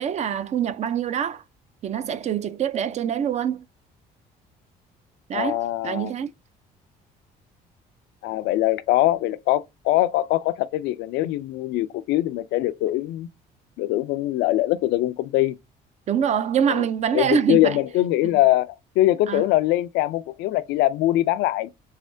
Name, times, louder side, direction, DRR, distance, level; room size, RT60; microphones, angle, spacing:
voice 1, 0.0-1.4 1.8-3.6 5.3-5.6 5.8-6.3 16.1-17.8 18.2-18.4 19.3-19.4, right 8 dB, 40° right, 0.4 m, -25 dB
voice 2, 5.3-6.1 8.2-13.3 13.8-15.6 16.7-16.9 17.1-21.7, left 15 dB, 85° left, 0.4 m, -22 dB
3.5 x 3.3 x 2.6 m
cardioid pair, 110°, 17 cm